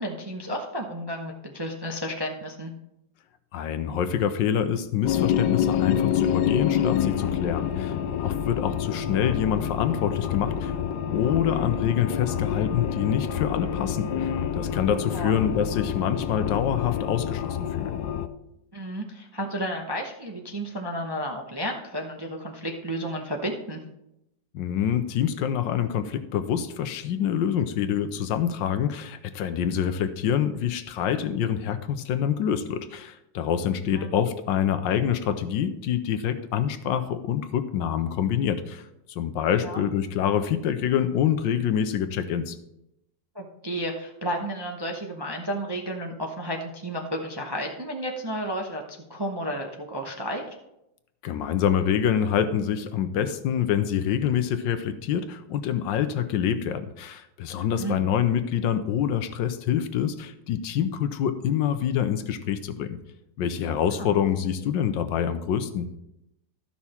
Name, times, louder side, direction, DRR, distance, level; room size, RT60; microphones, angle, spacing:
voice 1, 0.0-2.7 15.1-15.3 18.7-23.8 33.8-34.1 39.6-39.8 43.3-50.5 57.6-58.0 64.0-64.1, equal, 25° right, 1 dB, 0.5 m, -32 dB
voice 2, 3.5-10.7 11.1-18.0 24.5-38.8 39.1-42.6 51.2-63.0 63.4-65.9, left 9 dB, 90° left, 10 dB, 1.4 m, -26 dB
sound 1, 5.0-18.3, left 9 dB, 70° left, 1.1 m, -27 dB
12.5 x 5.9 x 4.3 m, 0.85 s
omnidirectional pair, 1.9 m